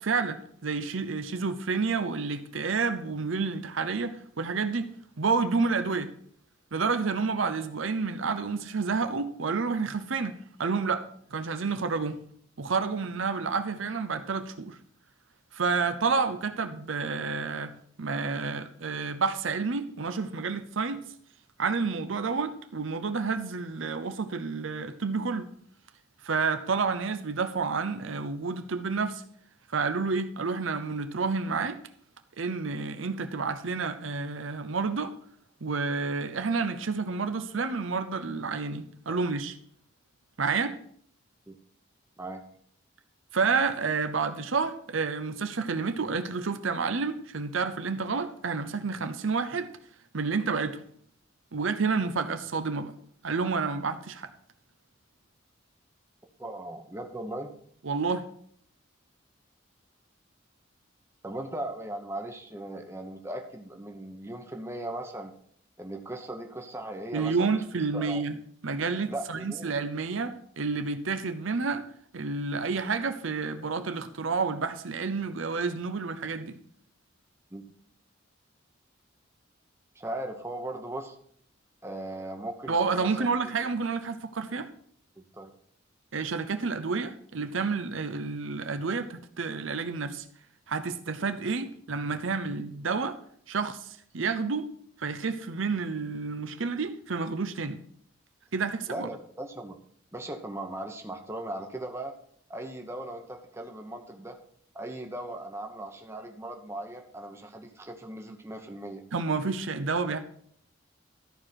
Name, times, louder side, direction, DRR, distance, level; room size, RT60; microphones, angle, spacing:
voice 1, 0.0-4.9 5.2-6.1 6.7-12.2 12.6-14.8 15.5-21.0 21.6-25.5 26.2-29.2 29.7-31.8 32.4-35.1 35.6-39.5 40.4-40.7 43.3-49.7 50.1-50.8 51.5-52.9 53.2-54.3 57.8-58.2 67.1-68.3 68.6-71.9 72.1-76.6 82.7-84.7 86.1-90.2 90.7-93.2 93.5-94.7 95.0-97.8 98.5-99.1 109.1-110.2, right 4 dB, 70° right, 0.7 m, -29 dB
voice 2, 56.4-57.5 61.2-65.3 65.8-67.6 67.9-68.2 69.1-69.7 77.5-77.7 79.9-81.2 81.8-83.1 85.2-85.5 98.9-99.8 100.1-102.1 102.5-104.4 104.7-109.0, right 1 dB, 15° right, 1.0 m, -38 dB
13.5 x 4.9 x 5.8 m
head